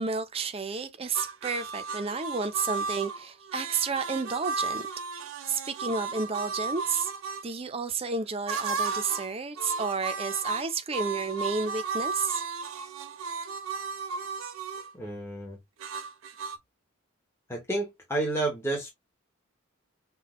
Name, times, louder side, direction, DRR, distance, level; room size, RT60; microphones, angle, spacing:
voice 1, 0.0-4.9 5.5-7.1 7.4-12.4, right 5 dB, 25° right, 0.5 m, -31 dB
sound 1, 1.1-7.4 8.5-9.3 9.6-14.9 15.8-16.6, right 4 dB, 75° right, 0.7 m, -34 dB
voice 2, 14.9-15.6 17.5-18.9, right 2 dB, 10° left, 0.8 m, -30 dB
5.8 x 2.2 x 2.9 m
head